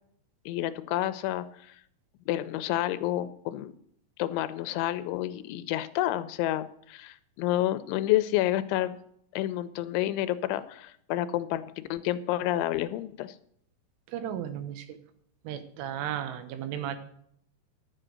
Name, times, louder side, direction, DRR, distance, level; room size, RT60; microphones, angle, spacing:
voice 1, 0.5-1.8 2.3-3.7 4.2-9.0 9.3-13.4, left 14 dB, 85° left, 13 dB, 3.0 m, -29 dB
voice 2, 14.1-15.0 15.5-17.0, right 10 dB, 90° right, 10 dB, 3.6 m, -34 dB
11.5 x 7.8 x 6.3 m, 0.67 s
omnidirectional pair, 5.4 m